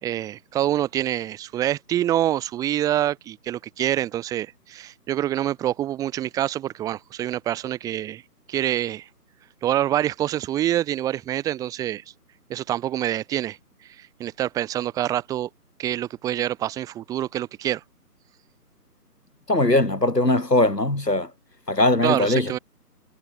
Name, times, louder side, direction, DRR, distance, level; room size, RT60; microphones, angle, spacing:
voice 1, 0.0-8.2 8.5-9.1 9.6-12.0 12.5-13.6 14.0-15.5 15.8-17.8 22.0-22.6, right 12 dB, 5° right, 3.4 m, -26 dB
voice 2, 19.5-21.3 21.7-22.5, left 2 dB, 85° left, 3.8 m, -20 dB
figure-of-eight pair, 150°, 47 cm